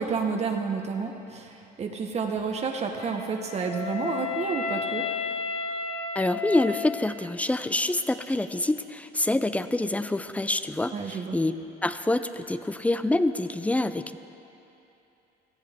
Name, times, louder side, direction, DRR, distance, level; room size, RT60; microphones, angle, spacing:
voice 1, 0.0-5.0 10.9-11.4, right 5 dB, 40° right, 3 dB, 1.0 m, -30 dB
Wind instrument woodwind instrument, 3.0-7.1, left 5 dB, 30° left, 1.9 m, -32 dB
voice 2, 6.2-11.6 11.8-14.2, left 2 dB, 10° left, 12 dB, 0.4 m, -26 dB
17.5 x 14.0 x 3.6 m, 2.8 s
cardioid pair, 110°, 17 cm